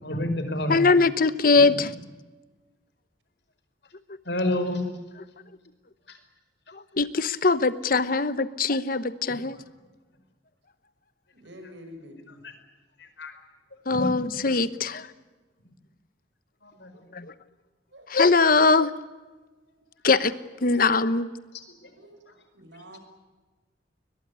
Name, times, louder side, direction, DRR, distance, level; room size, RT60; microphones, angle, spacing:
voice 1, 0.0-0.9 4.2-4.8 6.1-6.2 9.3-9.4 13.0-13.3 13.9-14.4 16.6-17.0, left 1 dB, 70° left, 8 dB, 5.0 m, -29 dB
voice 2, 0.7-1.9 6.7-9.6 13.9-15.1 17.1-17.3 18.1-18.9 20.0-20.3 20.6-21.3, left 4 dB, 50° left, 14 dB, 1.0 m, -21 dB
voice 3, 11.3-12.4 17.9-18.1 22.0-23.0, equal, 80° right, 8 dB, 6.0 m, -47 dB
22.0 x 22.0 x 9.6 m, 1.2 s
head